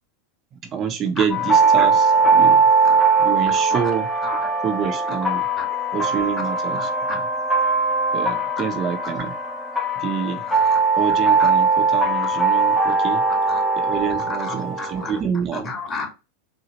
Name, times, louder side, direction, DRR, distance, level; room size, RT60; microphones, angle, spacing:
voice 1, 0.5-2.6 3.2-4.1 4.6-5.5 5.9-6.9 8.1-9.3 10.0-10.4 11.0-13.2 13.8-15.7, right 7 dB, 35° right, 0.6 m, -27 dB
sound 1, 1.3-15.2, right 4 dB, 5° left, 1.0 m, -20 dB
voice 2, 6.7-7.2 10.5-10.8 11.4-11.5 12.2-12.3 13.3-13.6 14.3-15.1 15.5-16.1, left 4 dB, 25° left, 1.4 m, -32 dB
4.0 x 2.0 x 2.9 m
hypercardioid pair, 100°, 0 cm